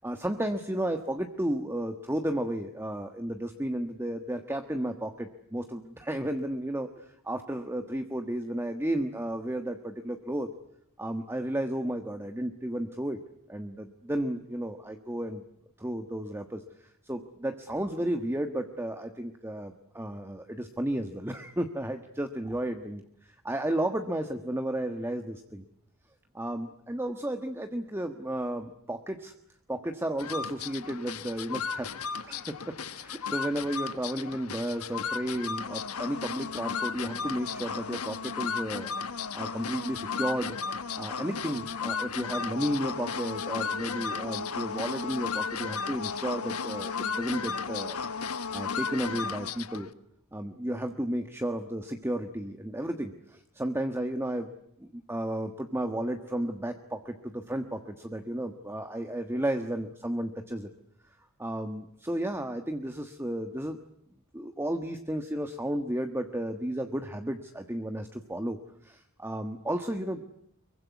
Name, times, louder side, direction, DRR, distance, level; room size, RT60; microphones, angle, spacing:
voice 1, 0.0-10.5 11.0-13.2 13.5-15.4 15.8-25.6 26.3-29.3 29.7-31.9 32.2-38.9 39.3-40.6 40.9-48.0 48.5-49.9 50.3-54.5 54.8-60.7 61.4-63.8 64.3-70.3, right 1 dB, 10° right, 6 dB, 1.3 m, -33 dB
sound 1, 30.2-49.9, left 5 dB, 85° left, 1.3 m, -34 dB
25.0 x 23.0 x 9.5 m, 0.71 s
head